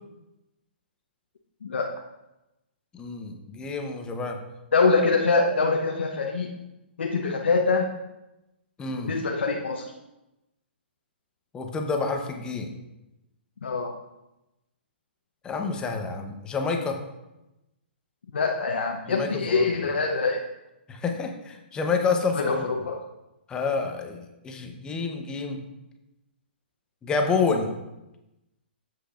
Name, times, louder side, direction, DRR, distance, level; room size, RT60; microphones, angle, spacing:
voice 1, 2.9-4.4 8.8-9.1 11.5-12.7 15.4-17.0 19.1-19.7 20.9-22.7 23.5-25.6 27.0-27.7, left 4 dB, 15° left, 4 dB, 0.9 m, -28 dB
voice 2, 4.7-6.5 7.0-7.9 9.0-9.9 13.6-13.9 18.3-20.4 22.3-23.0, left 4 dB, 85° left, 1 dB, 0.9 m, -24 dB
9.8 x 7.7 x 2.5 m, 0.95 s
hypercardioid pair, 140°, 6 cm